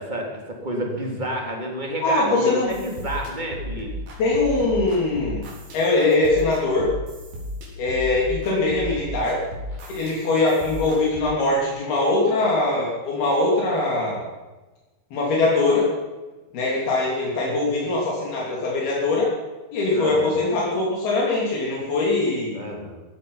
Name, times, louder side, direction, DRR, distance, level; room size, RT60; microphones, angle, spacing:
voice 1, 0.0-3.9 19.9-20.3 22.5-23.0, right 1 dB, 15° right, 0 dB, 2.7 m, -30 dB
voice 2, 2.0-2.7 4.2-5.4 5.7-6.9 7.8-9.4 10.0-14.3 15.1-15.9 16.5-19.3 19.7-22.6, left 2 dB, 80° left, -4 dB, 5.1 m, -22 dB
sound 1, 2.6-11.2, equal, 70° right, 5.6 m, -34 dB
16.5 x 14.0 x 5.7 m, 1.1 s
omnidirectional pair, 4.4 m